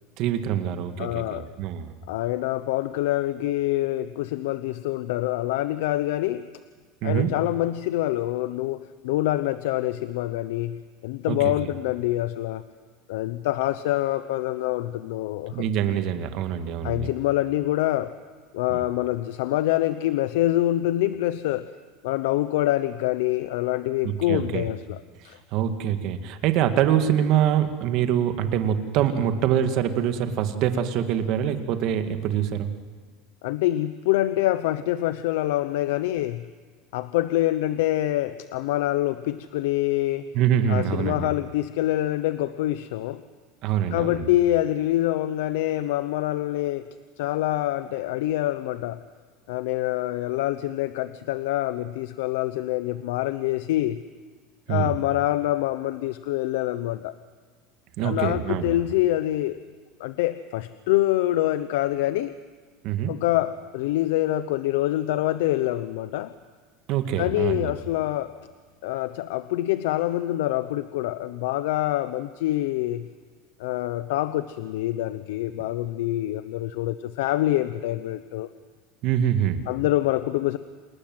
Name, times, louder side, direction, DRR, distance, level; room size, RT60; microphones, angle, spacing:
voice 1, 0.2-1.9 7.0-7.3 11.3-11.5 15.5-17.1 18.7-18.8 24.0-24.7 25.5-32.7 40.3-41.3 43.6-44.3 54.7-54.9 58.0-58.8 62.8-63.1 66.9-67.7 79.0-79.6, right 9 dB, 55° right, 8 dB, 2.1 m, -24 dB
voice 2, 1.0-1.5 2.1-6.5 7.0-12.6 13.1-15.6 16.8-18.1 18.5-21.7 22.0-25.4 33.4-36.5 36.9-40.3 40.7-43.2 43.9-46.8 47.2-49.0 49.5-54.0 54.7-57.1 58.0-59.6 60.0-62.3 63.1-66.3 67.2-68.3 68.8-73.1 73.6-78.5 79.7-80.6, left 15 dB, 85° left, 13 dB, 0.8 m, -25 dB
28.0 x 20.0 x 7.9 m, 1.5 s
supercardioid pair, 145°, 0 cm